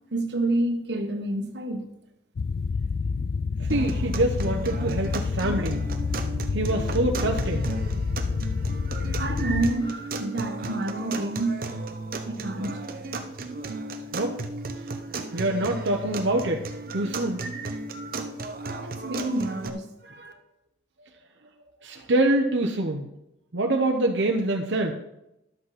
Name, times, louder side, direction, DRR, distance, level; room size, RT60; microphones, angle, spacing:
voice 1, 0.1-1.9 8.9-11.7 12.2-12.8 14.8-15.4 18.8-20.3, right 2 dB, 70° right, 1.4 m, -29 dB
sound 1, 2.4-9.7, left 4 dB, 60° left, 0.4 m, -28 dB
sound 2, 3.7-19.7, right 3 dB, 50° right, 0.8 m, -35 dB
voice 2, 3.7-5.8 6.5-7.7 14.1-14.4 15.3-16.7 16.9-17.4 21.8-23.1 23.5-24.9, right 2 dB, 90° right, 0.9 m, -25 dB
11.5 x 8.0 x 4.1 m
head